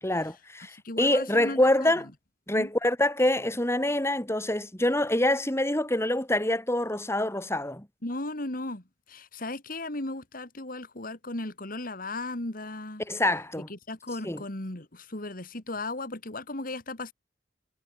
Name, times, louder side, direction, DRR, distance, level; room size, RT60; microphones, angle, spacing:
voice 1, 0.0-2.1 2.5-7.9 13.1-13.7 14.2-14.4, left 1 dB, 15° left, 3.9 m, -25 dB
voice 2, 0.8-1.9 2.5-2.7 8.0-13.0 13.7-17.1, left 2 dB, 50° left, 2.9 m, -36 dB
head